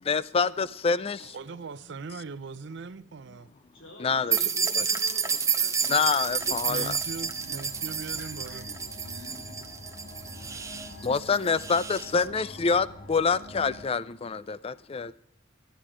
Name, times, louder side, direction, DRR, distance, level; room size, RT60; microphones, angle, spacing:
voice 1, 0.0-1.3 4.0-4.4 4.8-4.9 5.9-7.0 11.0-15.1, left 5 dB, 30° left, 0.4 m, -26 dB
voice 2, 1.2-3.5 6.6-8.7, right 4 dB, 65° right, 0.6 m, -40 dB
voice 3, 3.7-6.5 7.4-7.6 8.0-8.6 8.9-9.4 11.9-12.3 13.3-13.6, left 1 dB, 85° left, 3.6 m, -49 dB
sound 1, 4.3-12.1, right 6 dB, 15° right, 0.6 m, -30 dB
sound 2, 6.2-13.9, left 1 dB, 50° left, 3.5 m, -46 dB
12.5 x 10.0 x 4.9 m
head